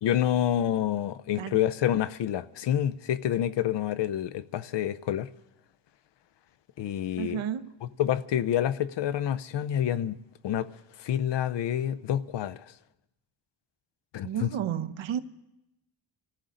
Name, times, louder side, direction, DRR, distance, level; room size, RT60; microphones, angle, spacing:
voice 1, 0.0-5.3 6.8-7.4 8.0-10.2 10.4-10.7 11.0-12.6 14.1-14.5, left 11 dB, 65° left, 0.6 m, -28 dB
voice 2, 7.2-7.8 14.2-15.2, right 9 dB, 75° right, 0.9 m, -32 dB
26.0 x 14.0 x 3.8 m
wide cardioid pair, 170°, 46 cm